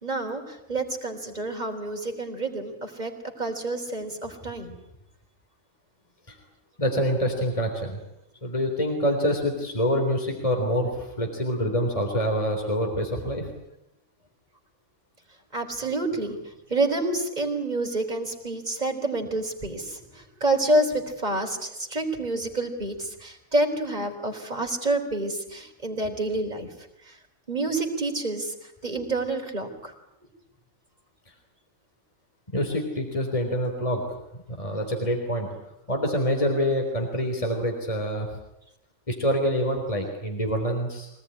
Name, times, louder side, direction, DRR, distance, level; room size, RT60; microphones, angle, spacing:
voice 1, 0.0-3.1 3.4-4.8 15.5-26.7 27.1-27.2 27.5-29.9, right 2 dB, 30° right, 3 dB, 4.0 m, -28 dB
voice 2, 6.8-8.0 8.4-13.5 32.5-34.0 34.5-35.5 35.9-38.3 39.1-41.1, equal, 25° left, 2 dB, 3.8 m, -26 dB
24.5 x 19.0 x 9.8 m, 0.84 s
omnidirectional pair, 1.4 m